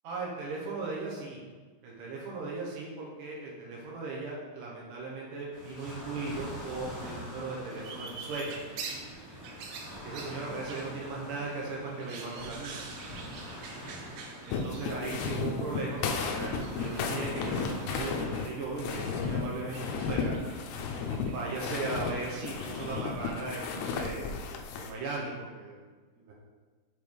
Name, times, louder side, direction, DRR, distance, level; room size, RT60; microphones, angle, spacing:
voice 1, 0.0-1.4 1.8-8.6 10.0-12.9 14.4-20.3 21.3-24.4 24.8-25.8 26.2-26.3, right 3 dB, 70° right, -4 dB, 2.2 m, -37 dB
sound 1, 5.5-18.4, equal, 35° left, 1.9 m, -45 dB
sound 2, 7.7-23.4, right 4 dB, 85° right, 2.8 m, -47 dB
sound 3, 14.5-24.9, left 5 dB, 85° left, 2.7 m, -34 dB
7.4 x 3.4 x 4.6 m, 1.4 s
omnidirectional pair, 4.7 m